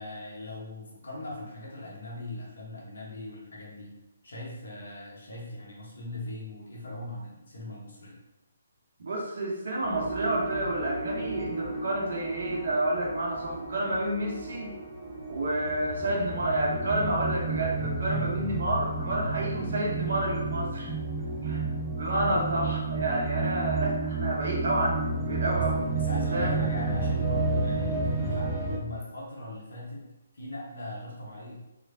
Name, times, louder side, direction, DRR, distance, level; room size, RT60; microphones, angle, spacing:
voice 1, 0.0-3.9 4.2-8.2 17.7-18.8 20.8-21.6 22.3-22.5 25.5-25.7 25.9-30.1 30.3-31.6, left 1 dB, 70° left, -3 dB, 1.2 m, -39 dB
voice 2, 9.0-14.7 15.3-20.9 21.4-25.0 25.3-25.9 26.3-26.5, right 1 dB, 60° right, -2 dB, 1.0 m, -29 dB
sound 1, 9.8-28.8, right 3 dB, 20° right, 0.6 m, -31 dB
3.2 x 3.0 x 2.7 m, 0.99 s
figure-of-eight pair, 140°, 0 cm